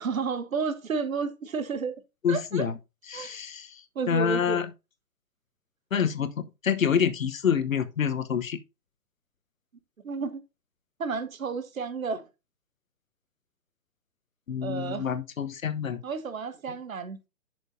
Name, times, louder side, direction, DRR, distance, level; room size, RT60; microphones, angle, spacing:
voice 1, 0.0-1.9 2.3-2.7 3.1-3.4 3.9-4.6 10.0-10.4 11.0-12.2 14.6-15.1 16.0-17.3, right 5 dB, 60° right, 1.3 m, -31 dB
voice 2, 2.2-2.7 3.1-3.8 4.1-4.7 5.9-8.6 14.5-16.0, left 7 dB, 60° left, 1.1 m, -27 dB
11.0 x 6.4 x 2.7 m
figure-of-eight pair, 135°, 46 cm